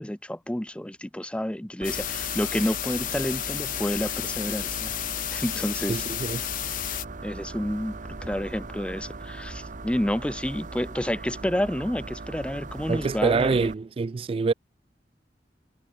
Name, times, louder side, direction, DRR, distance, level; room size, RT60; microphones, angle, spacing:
voice 1, 0.0-4.9 5.3-6.0 7.2-13.7, left 1 dB, 5° left, 0.6 m, -29 dB
sound 1, 1.8-7.1, left 15 dB, 50° left, 0.4 m, -32 dB
sound 2, 1.8-13.7, right 3 dB, 45° right, 1.0 m, -39 dB
voice 2, 5.9-6.4 12.9-14.5, right 4 dB, 30° right, 0.3 m, -25 dB
head